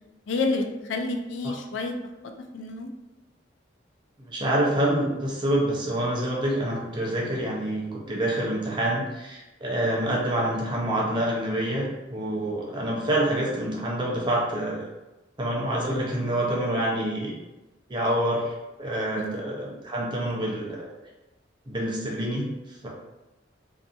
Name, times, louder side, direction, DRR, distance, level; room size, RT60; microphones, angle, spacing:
voice 1, 0.3-1.9 2.5-2.9 19.2-19.4, left 3 dB, 75° left, 5 dB, 0.3 m, -29 dB
voice 2, 4.2-14.9 15.4-17.3 17.9-18.5 18.8-20.9 21.7-22.9, right 1 dB, 25° right, -3 dB, 0.5 m, -27 dB
2.6 x 2.6 x 2.4 m, 1.0 s
head